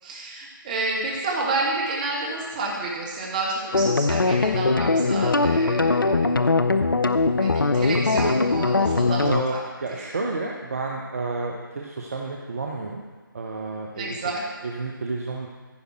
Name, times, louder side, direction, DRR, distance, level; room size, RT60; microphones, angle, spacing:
voice 1, 0.0-6.2 7.3-9.6 13.9-14.4, right 2 dB, 20° right, -2 dB, 1.7 m, -29 dB
sound 1, 3.7-9.4, left 3 dB, 70° left, 0.6 m, -21 dB
voice 2, 9.2-13.0 13.3-14.2 14.6-15.5, right 3 dB, 40° right, -1 dB, 0.9 m, -30 dB
14.5 x 5.3 x 4.6 m, 1.4 s
figure-of-eight pair, 155°, 12 cm